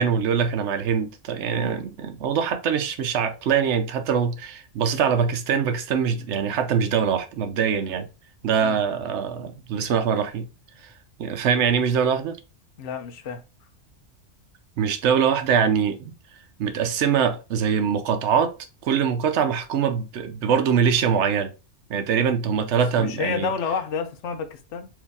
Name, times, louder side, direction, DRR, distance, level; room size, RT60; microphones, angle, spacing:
voice 1, 0.0-8.1 8.4-10.5 11.2-12.4 14.8-16.1 16.6-18.5 18.8-21.5 21.9-23.5, right 7 dB, 70° right, 1.0 m, -23 dB
voice 2, 12.8-13.4 23.0-24.9, left 6 dB, 70° left, 0.9 m, -29 dB
4.7 x 2.7 x 3.4 m
omnidirectional pair, 1.3 m